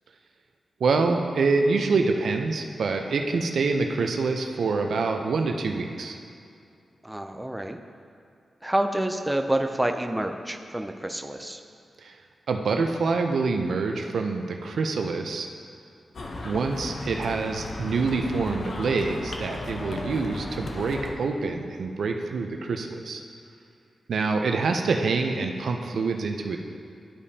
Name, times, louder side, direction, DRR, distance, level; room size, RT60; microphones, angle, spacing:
voice 1, 0.8-6.2 12.0-12.1 12.5-15.5 16.4-23.2 24.1-26.6, right 4 dB, 80° right, 4 dB, 0.6 m, -26 dB
voice 2, 7.0-7.8 8.6-11.6, right 1 dB, 10° right, 5 dB, 0.5 m, -28 dB
sound 1, 16.1-21.1, left 2 dB, 55° left, 0.8 m, -35 dB
12.5 x 5.1 x 2.8 m, 2.5 s
wide cardioid pair, 90°, 0 cm